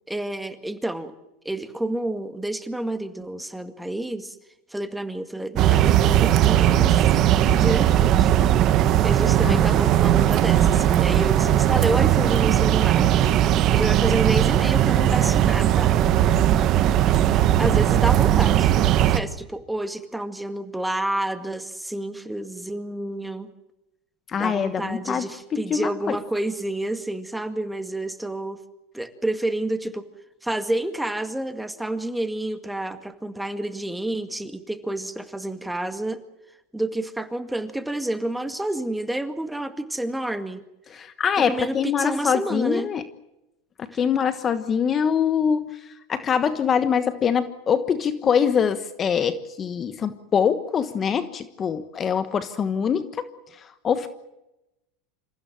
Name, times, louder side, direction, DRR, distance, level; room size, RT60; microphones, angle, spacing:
voice 1, 0.1-1.1 1.5-4.4 4.7-7.0 7.5-8.3 9.0-13.2 13.5-16.0 17.6-23.5 24.4-28.6 28.9-30.1 30.4-36.2 36.7-40.6 41.5-42.9, right 1 dB, 5° right, 9 dB, 2.0 m, -29 dB
sound 1, 5.6-19.2, right 11 dB, 45° right, 1.4 m, -18 dB
voice 2, 24.3-25.3 25.5-26.2 40.9-43.1 43.8-54.1, left 7 dB, 30° left, 11 dB, 1.2 m, -24 dB
27.0 x 15.5 x 8.9 m, 0.93 s
supercardioid pair, 110°, 0 cm